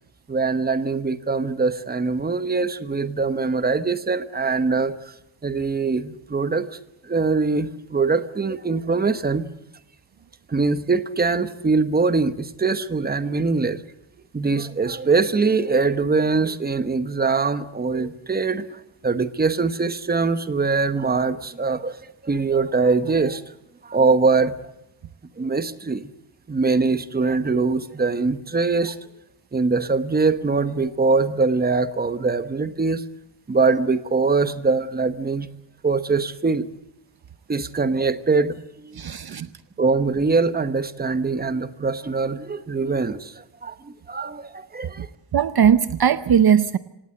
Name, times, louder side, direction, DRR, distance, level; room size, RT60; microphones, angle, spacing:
voice 1, 0.3-4.9 5.4-6.7 7.0-9.5 10.5-13.8 14.3-22.0 22.2-23.4 23.8-24.5 25.4-26.1 26.5-29.0 29.5-33.0 33.5-35.5 35.8-36.7 37.5-38.6 38.8-39.0 39.8-45.1, right 4 dB, 20° right, 12 dB, 1.0 m, -22 dB
voice 2, 38.9-39.5 45.3-46.8, right 8 dB, 55° right, 13 dB, 0.8 m, -18 dB
26.5 x 18.0 x 7.8 m, 0.84 s
wide cardioid pair, 175°, 46 cm